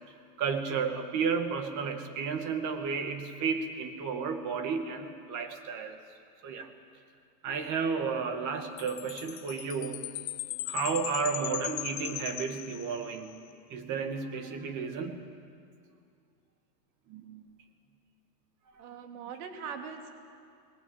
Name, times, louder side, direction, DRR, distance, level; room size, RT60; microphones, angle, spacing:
voice 1, 0.4-6.0 6.4-6.7 7.4-10.1 10.7-13.4 13.7-15.2 17.1-17.4 18.7-18.8, right 5 dB, 35° right, 7 dB, 2.3 m, -32 dB
Chime, 8.8-13.3, left 16 dB, 70° left, 0.8 m, -38 dB
voice 2, 18.8-20.1, right 6 dB, 60° right, 5 dB, 2.8 m, -41 dB
20.0 x 18.0 x 8.9 m, 2.3 s
hypercardioid pair, 125°, 49 cm